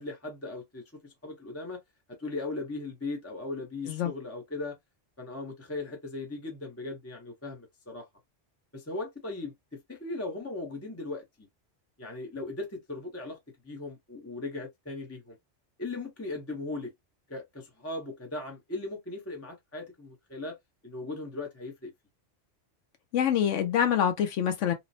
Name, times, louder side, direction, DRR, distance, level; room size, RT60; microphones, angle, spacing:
voice 1, 0.0-1.8 2.1-4.8 5.2-8.1 8.7-11.5 12.0-13.4 13.6-15.4 15.8-16.9 17.3-20.6 20.8-21.9, left 2 dB, 15° left, 0.6 m, -38 dB
voice 2, 23.1-24.7, left 9 dB, 85° left, 1.0 m, -25 dB
3.0 x 2.0 x 2.6 m
omnidirectional pair, 1.2 m